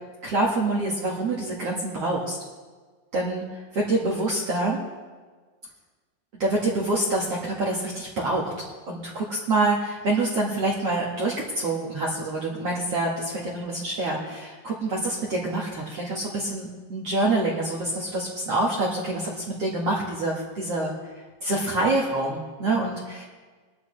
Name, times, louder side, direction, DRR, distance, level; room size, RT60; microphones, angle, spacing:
voice 1, 0.2-2.4 3.1-3.4 3.7-4.8 6.4-8.5 8.9-20.9 21.4-23.2, right 2 dB, 60° right, -4 dB, 1.7 m, -26 dB
22.5 x 10.5 x 3.3 m, 1.4 s
omnidirectional pair, 5.3 m